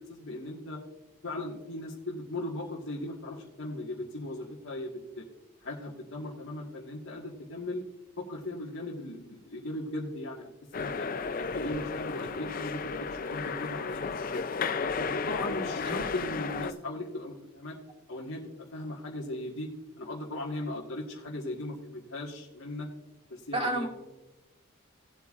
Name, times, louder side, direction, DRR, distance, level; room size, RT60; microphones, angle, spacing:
voice 1, 0.1-0.8 1.2-5.2 5.6-7.8 8.2-10.5 10.7-11.1 11.4-14.4 15.0-17.8 18.1-18.4 18.7-19.7 20.0-22.9 23.3-23.9, left 1 dB, 70° left, -5 dB, 1.7 m, -38 dB
sound 1, 10.7-16.7, left 5 dB, 40° left, 0.4 m, -33 dB
voice 2, 23.5-23.9, right 1 dB, 25° right, 2 dB, 1.7 m, -30 dB
18.5 x 8.3 x 2.5 m, 1.0 s
head